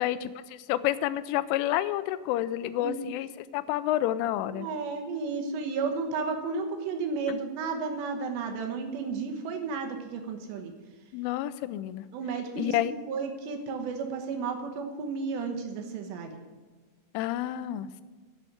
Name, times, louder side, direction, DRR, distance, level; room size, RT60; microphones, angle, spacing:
voice 1, 0.0-4.7 11.1-12.0 12.6-12.9 17.1-18.0, left 13 dB, 90° left, 14 dB, 3.1 m, -29 dB
voice 2, 4.5-10.7 12.1-12.7 13.1-16.4, right 4 dB, 70° right, 4 dB, 3.1 m, -33 dB
10.5 x 7.8 x 8.5 m, 1.4 s
omnidirectional pair, 5.6 m